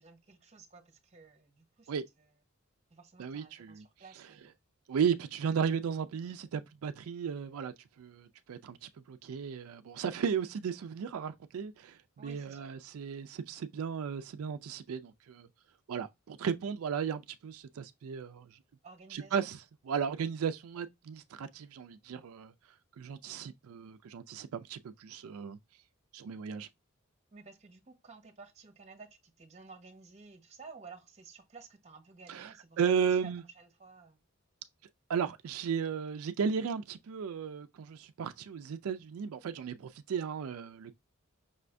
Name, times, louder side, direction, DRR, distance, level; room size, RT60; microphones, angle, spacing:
voice 1, 0.0-1.9 2.2-2.3 2.9-4.5 12.2-12.7 18.8-19.4 27.3-33.3 33.6-34.2, right 4 dB, 30° right, 0.9 m, -53 dB
voice 2, 3.2-3.9 4.9-15.5 15.9-18.6 19.1-22.5 23.0-25.6 26.1-26.7 32.3-33.4 35.1-40.9, right 7 dB, 85° right, 0.4 m, -35 dB
5.5 x 2.5 x 3.3 m
head